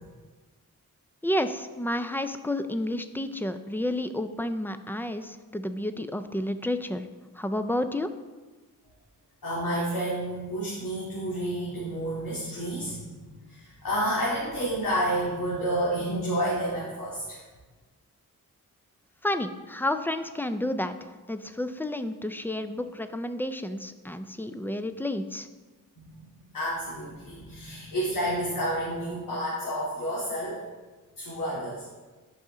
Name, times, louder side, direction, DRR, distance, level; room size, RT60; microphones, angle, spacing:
voice 1, 1.2-7.1 7.4-8.1 19.2-20.9 21.3-25.5, left 1 dB, 5° left, 9 dB, 0.3 m, -30 dB
voice 2, 9.4-17.4 26.0-30.6 31.2-31.9, right 1 dB, 70° left, -8 dB, 2.3 m, -30 dB
10.0 x 5.6 x 3.7 m, 1.3 s
wide cardioid pair, 130°, 33 cm